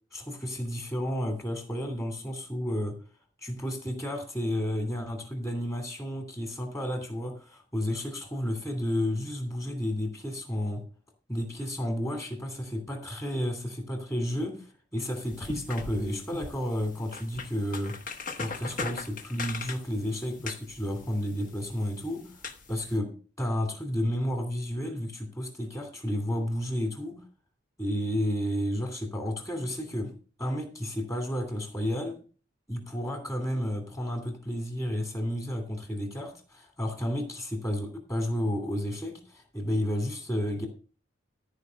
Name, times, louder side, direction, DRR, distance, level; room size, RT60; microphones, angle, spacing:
voice 1, 0.1-3.0 3.4-10.8 11.3-18.0 18.4-22.4 22.7-23.1 23.4-27.2 27.8-30.1 30.4-32.2 32.7-40.7, equal, 15° left, 3 dB, 2.7 m, -31 dB
sound 1, 15.0-23.0, left 4 dB, 45° left, 1.2 m, -41 dB
14.0 x 5.0 x 6.4 m, 0.39 s
head